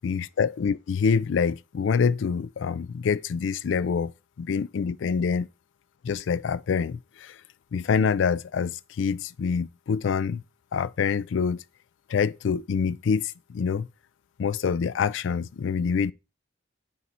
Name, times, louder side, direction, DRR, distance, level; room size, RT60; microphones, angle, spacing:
voice 1, 0.0-4.1 4.4-5.5 6.0-7.4 7.7-10.4 10.7-11.6 12.1-13.9 14.4-16.1, left 6 dB, 90° left, 0.4 m, -26 dB
9.2 x 4.0 x 4.2 m
head